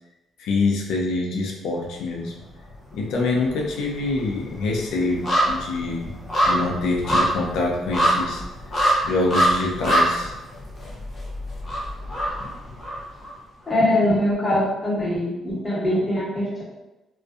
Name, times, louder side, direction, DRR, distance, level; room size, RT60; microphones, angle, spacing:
voice 1, 0.4-2.3 2.9-6.1 6.4-8.4 9.1-10.3, left 3 dB, 85° left, -1 dB, 0.5 m, -25 dB
sound 1, 2.3-3.1 3.3-13.3 13.7-13.8, equal, 45° left, 0.8 m, -24 dB
voice 2, 13.7-16.6, left 1 dB, 25° left, -8 dB, 1.2 m, -22 dB
2.5 x 2.2 x 2.3 m, 1.0 s
cardioid pair, 90°, 0 cm